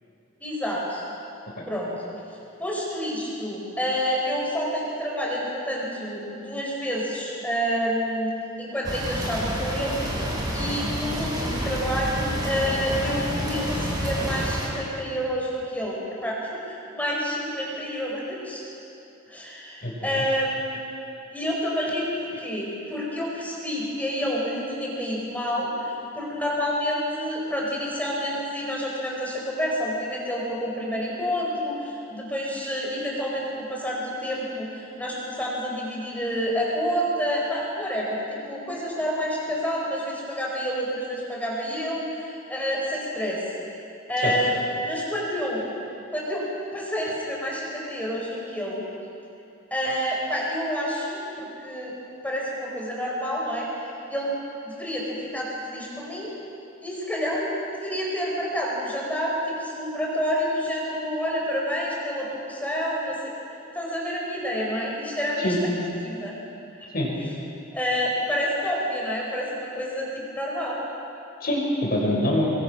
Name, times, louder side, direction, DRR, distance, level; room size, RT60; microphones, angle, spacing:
voice 1, 0.4-1.0 1.7-1.9 2.6-8.3 8.6-10.0 10.5-18.6 19.3-20.8 21.3-43.4 44.1-45.6 46.1-46.5 46.7-48.9 49.7-51.9 52.2-54.3 54.6-56.3 56.8-63.2 63.7-65.5 66.0-66.4 67.7-70.8, equal, 10° left, -3 dB, 4.7 m, -28 dB
sound 1, 8.8-14.7, equal, 20° right, 4.8 m, -29 dB
voice 2, 19.8-20.2 44.2-44.3 65.4-65.6 66.9-67.1 71.4-72.5, left 1 dB, 50° left, -2 dB, 5.8 m, -25 dB
26.0 x 22.0 x 6.2 m, 2.8 s
head